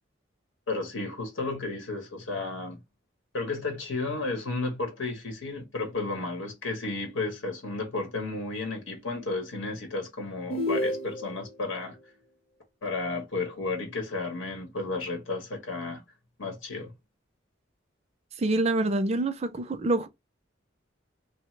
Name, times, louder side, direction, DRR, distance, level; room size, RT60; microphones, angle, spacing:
voice 1, 0.7-2.8 3.3-12.0 12.8-16.0 16.4-16.9, left 3 dB, 80° left, 1.0 m, -33 dB
sound 1, 10.5-11.5, left 1 dB, 30° left, 0.6 m, -30 dB
voice 2, 18.4-20.1, right 2 dB, 30° right, 0.4 m, -26 dB
2.9 x 2.0 x 3.1 m
head